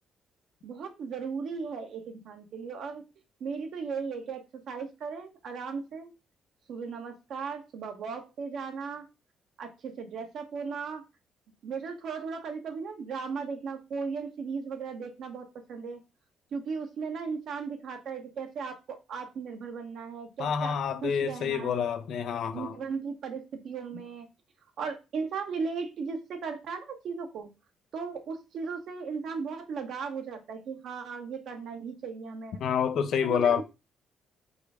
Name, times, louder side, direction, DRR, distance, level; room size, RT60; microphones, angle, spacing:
voice 1, 0.6-3.0 3.4-6.1 6.7-9.1 9.6-11.0 11.6-16.0 16.5-20.7 21.0-21.9 22.5-24.3 24.8-27.5 27.9-32.6 33.2-33.6, right 5 dB, 70° right, 1.1 m, -36 dB
voice 2, 20.4-22.8 32.6-33.6, left 7 dB, 70° left, 0.5 m, -28 dB
4.9 x 2.2 x 4.8 m
cardioid pair, 90°, 0 cm